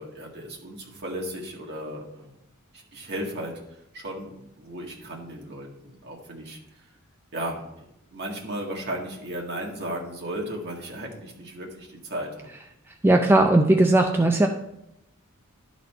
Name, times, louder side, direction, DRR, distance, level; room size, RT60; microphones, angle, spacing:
voice 1, 0.0-2.3 2.7-6.6 7.3-7.6 8.1-12.5, right 1 dB, 50° right, -2 dB, 1.9 m, -35 dB
voice 2, 13.0-14.5, right 2 dB, 10° right, 3 dB, 0.4 m, -18 dB
12.0 x 4.1 x 4.4 m, 0.85 s
head